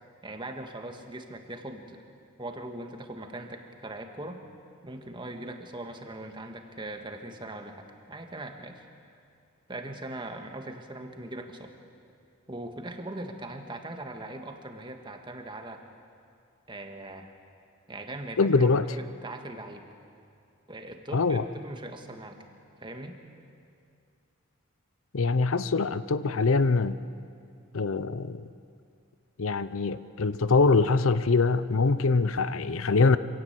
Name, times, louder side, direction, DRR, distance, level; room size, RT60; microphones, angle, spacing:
voice 1, 0.2-2.0 2.4-4.4 4.8-8.8 9.7-11.7 12.5-15.8 16.7-17.3 17.9-19.9 20.7-22.4 22.8-23.2, right 1 dB, 20° right, 5 dB, 1.7 m, -40 dB
voice 2, 18.4-18.9 21.1-21.5 25.1-27.0 27.7-28.4 29.4-33.2, left 4 dB, 70° left, 14 dB, 0.7 m, -23 dB
26.0 x 17.5 x 8.2 m, 2.4 s
head